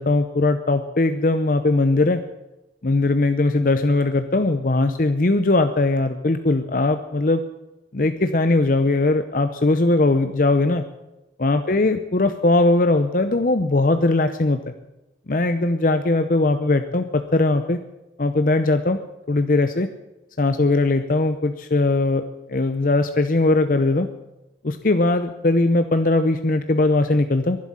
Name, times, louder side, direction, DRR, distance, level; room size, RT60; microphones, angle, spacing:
voice 1, 0.0-2.2 2.8-7.4 7.9-10.8 11.4-14.6 15.3-17.8 18.2-19.0 19.3-19.9 20.4-22.2 22.5-24.1 24.6-27.6, left 2 dB, 50° left, 9 dB, 0.7 m, -20 dB
11.5 x 11.0 x 10.0 m, 0.97 s
head